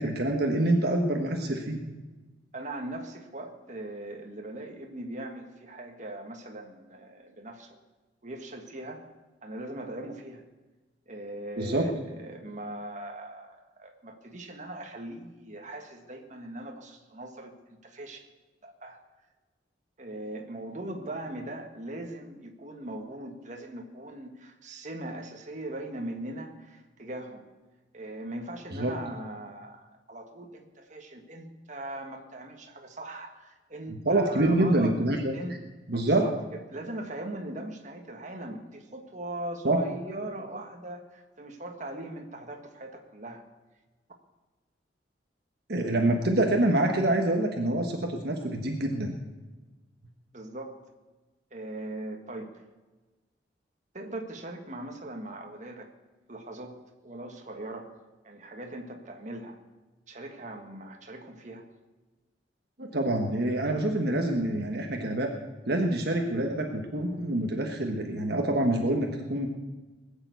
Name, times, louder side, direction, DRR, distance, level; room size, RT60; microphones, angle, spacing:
voice 1, 0.0-1.8 11.6-11.9 28.7-28.9 33.9-35.3 35.9-36.2 39.6-39.8 45.7-49.1 62.8-65.3 65.7-69.5, right 1 dB, 60° right, 2 dB, 1.4 m, -26 dB
voice 2, 2.5-7.8 8.2-9.0 9.4-10.4 11.1-18.2 18.6-19.0 20.0-27.4 27.9-35.0 35.3-35.6 35.9-36.4 36.7-43.4 50.3-50.8 51.5-52.5 53.9-55.9 56.3-57.9 58.2-59.6 60.1-61.6, right 1 dB, 40° right, 3 dB, 1.7 m, -40 dB
20.5 x 7.1 x 8.2 m, 1.2 s
head